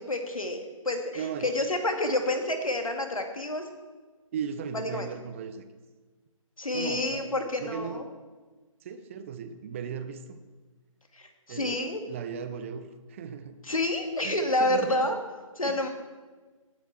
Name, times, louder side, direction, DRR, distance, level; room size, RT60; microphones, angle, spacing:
voice 1, 0.0-3.7 4.7-5.1 6.6-8.0 11.1-12.0 13.7-15.2 15.6-15.9, left 1 dB, 75° left, 5 dB, 2.2 m, -29 dB
voice 2, 1.1-1.5 4.3-5.6 6.7-7.3 7.6-8.1 8.8-10.4 11.5-13.6 14.2-15.1 15.6-15.9, right 7 dB, 25° right, 10 dB, 0.7 m, -37 dB
18.5 x 8.2 x 4.6 m, 1.3 s
figure-of-eight pair, 145°, 18 cm